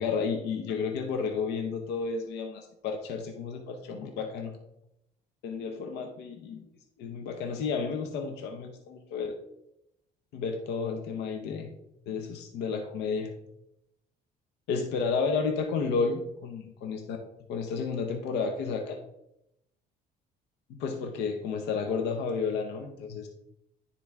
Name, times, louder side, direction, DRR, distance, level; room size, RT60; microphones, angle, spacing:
voice 1, 0.0-4.6 5.4-6.6 7.0-9.3 10.3-11.7 12.1-13.3 14.7-17.2 17.5-19.0 20.7-23.3, left 5 dB, 80° left, 4 dB, 0.8 m, -32 dB
9.9 x 3.9 x 3.5 m, 0.82 s
cardioid pair, 110°, 17 cm